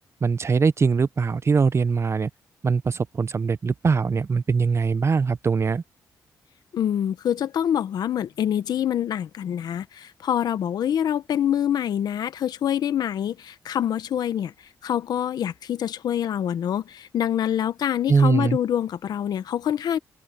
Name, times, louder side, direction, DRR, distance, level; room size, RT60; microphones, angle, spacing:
voice 1, 0.2-2.3 2.6-5.8 18.1-18.6, right 5 dB, 40° right, 0.7 m, -22 dB
voice 2, 6.7-20.0, left 10 dB, 75° left, 1.0 m, -26 dB
open air
cardioid pair, 65°, 7 cm